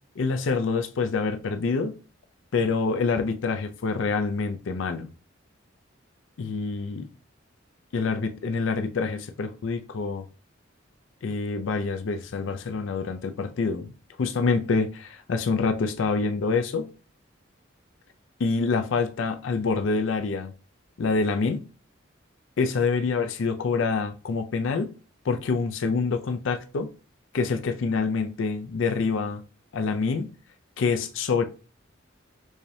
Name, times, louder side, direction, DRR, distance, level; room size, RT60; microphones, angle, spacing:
voice 1, 0.2-2.0 2.5-5.1 6.4-7.1 7.9-10.2 11.2-13.9 14.2-16.9 18.4-20.5 21.0-21.6 22.6-24.9 25.2-26.9 27.3-29.4 29.7-30.3 30.8-31.4, left 4 dB, 75° left, 0.4 m, -26 dB
4.7 x 2.7 x 2.7 m
head